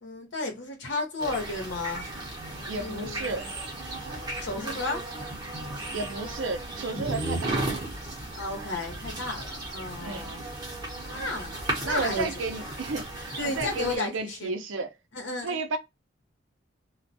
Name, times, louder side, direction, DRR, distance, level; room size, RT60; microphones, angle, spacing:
voice 1, 0.0-2.0 2.8-3.5 4.4-5.0 8.3-10.4 11.1-12.3 13.4-14.5 15.1-15.6, left 2 dB, 70° left, 1.0 m, -33 dB
sound 1, 1.2-14.0, right 1 dB, 20° right, 0.9 m, -35 dB
voice 2, 2.7-3.5 5.9-7.8 10.0-10.4 11.8-14.9 15.4-15.8, right 3 dB, 85° right, 0.6 m, -32 dB
2.3 x 2.2 x 2.6 m
head